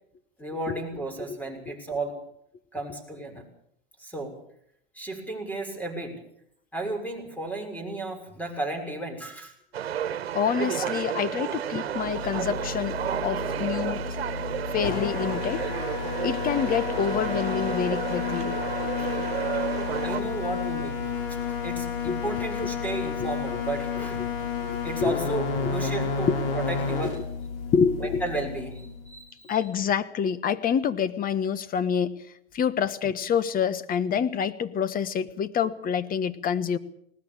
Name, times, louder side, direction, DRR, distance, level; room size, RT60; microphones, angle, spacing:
voice 1, 0.4-2.2 2.7-3.4 4.0-4.4 4.9-6.2 6.7-9.5 13.5-13.6 19.0-19.3 20.0-24.5 24.8-27.2 28.0-29.6, right 2 dB, 5° left, 5 dB, 6.4 m, -34 dB
sound 1, 9.7-20.2, right 9 dB, 90° right, 1.4 m, -32 dB
voice 2, 10.3-14.0 14.7-15.6 16.2-18.6 22.1-22.2 24.2-24.3 24.6-25.1 25.6-25.7 27.7-28.2 29.5-32.2 32.5-36.8, left 7 dB, 30° left, 14 dB, 1.4 m, -27 dB
sound 2, 11.9-29.1, left 5 dB, 65° left, 6.2 m, -31 dB
20.5 x 19.0 x 7.4 m, 0.72 s
hypercardioid pair, 115°, 30 cm